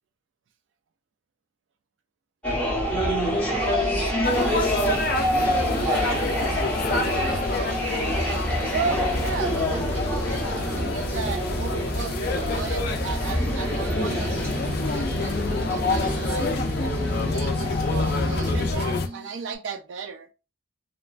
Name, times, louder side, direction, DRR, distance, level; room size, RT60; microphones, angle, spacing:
sound 1, 2.4-18.7, equal, 5° left, 0.8 m, -27 dB
voice 1, 3.4-6.3 7.1-7.8 8.6-14.5 14.8-17.0 17.3-20.3, right 5 dB, 65° right, 0.3 m, -35 dB
Glass, 3.8-19.6, right 1 dB, 45° right, 1.5 m, -42 dB
sound 2, 4.2-19.1, left 3 dB, 50° left, 0.4 m, -28 dB
3.0 x 2.2 x 2.4 m
head